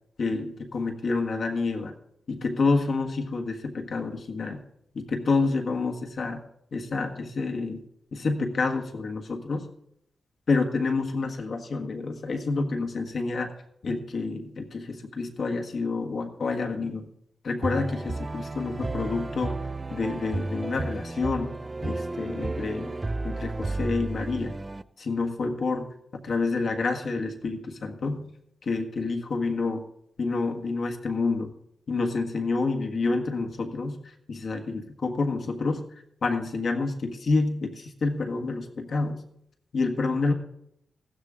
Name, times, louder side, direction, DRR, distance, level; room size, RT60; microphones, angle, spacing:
voice 1, 0.2-1.9 2.3-4.6 4.9-6.4 6.7-7.8 8.1-9.7 10.5-13.5 13.8-17.1 17.4-19.5 19.9-21.5 21.8-22.9 23.2-24.6 25.0-25.9 26.2-28.3 28.6-29.8 30.2-31.5 31.9-34.0 34.3-35.9 36.2-39.2 39.7-40.3, left 3 dB, 65° left, 2 dB, 1.6 m, -28 dB
sound 1, 17.6-24.8, right 2 dB, 30° right, 0.5 m, -32 dB
14.5 x 12.5 x 3.7 m, 0.77 s
cardioid pair, 65°, 0 cm